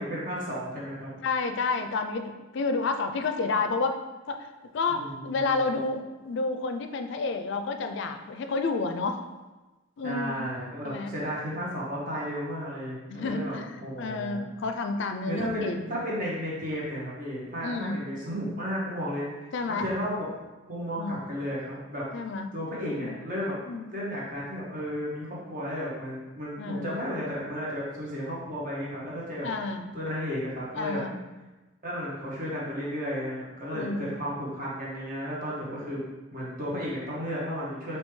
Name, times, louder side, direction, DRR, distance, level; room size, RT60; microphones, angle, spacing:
voice 1, 0.0-1.1 4.9-5.6 10.0-14.4 15.3-20.3 20.6-22.1 22.5-23.5 23.9-29.5 29.9-31.0 31.8-36.0 36.3-38.0, equal, 45° right, -6 dB, 1.4 m, -33 dB
voice 2, 1.2-4.0 4.3-9.2 10.0-10.5 10.8-11.1 13.1-16.0 17.6-18.0 19.5-19.9 21.0-21.2 22.1-22.5 23.0-23.2 23.7-24.0 26.6-27.0 29.4-29.9 30.8-31.2 33.7-34.2, left 3 dB, 65° left, 6 dB, 0.4 m, -30 dB
5.3 x 3.0 x 3.2 m, 1.1 s
head